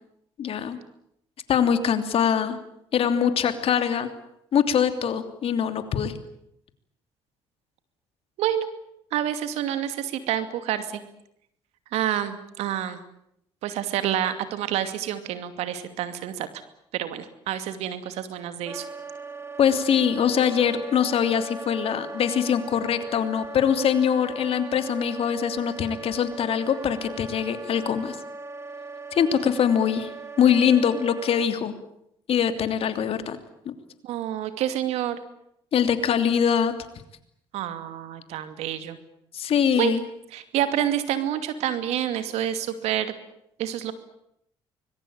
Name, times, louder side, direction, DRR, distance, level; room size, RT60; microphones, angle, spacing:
voice 1, 0.4-0.8 1.5-2.6 2.9-4.1 4.5-6.1 19.6-28.2 29.1-30.1 30.4-31.7 32.3-33.4 33.6-33.7 35.7-36.7 39.3-40.0, left 8 dB, 65° left, 9 dB, 3.1 m, -23 dB
voice 2, 9.1-11.0 11.9-13.0 13.6-16.5 16.9-18.9 34.0-35.2 37.5-39.0 39.7-39.9 40.3-43.1 43.6-43.9, right 11 dB, 80° right, 10 dB, 2.5 m, -28 dB
Wind instrument woodwind instrument, 18.7-31.5, right 2 dB, 25° right, 2.8 m, -39 dB
25.0 x 22.0 x 8.9 m, 0.76 s
supercardioid pair, 60°, 11 cm